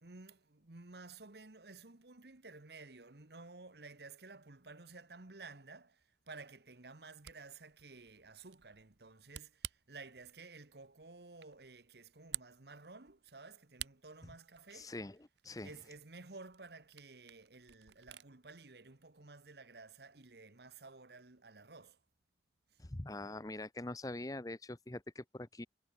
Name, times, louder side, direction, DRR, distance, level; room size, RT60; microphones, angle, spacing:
voice 1, 0.0-14.9 15.6-22.0 22.7-22.8, right 3 dB, 65° right, 1.5 m, -54 dB
Camera, 7.0-18.3, right 12 dB, 85° right, 1.0 m, -52 dB
voice 2, 14.7-15.2 15.4-15.7 22.8-25.7, left 2 dB, 20° left, 0.8 m, -43 dB
head